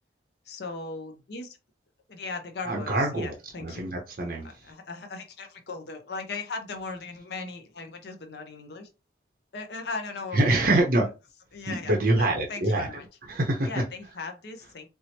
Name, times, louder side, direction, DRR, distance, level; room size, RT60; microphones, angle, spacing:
voice 1, 0.4-1.6 2.1-3.8 4.4-8.9 9.5-10.7 11.5-13.1 13.6-14.9, left 3 dB, 60° left, 0.6 m, -38 dB
voice 2, 2.7-3.3 3.6-4.5 10.3-11.0 11.7-12.9 13.3-13.7, right 2 dB, 50° right, 0.6 m, -24 dB
4.4 x 2.0 x 2.8 m
head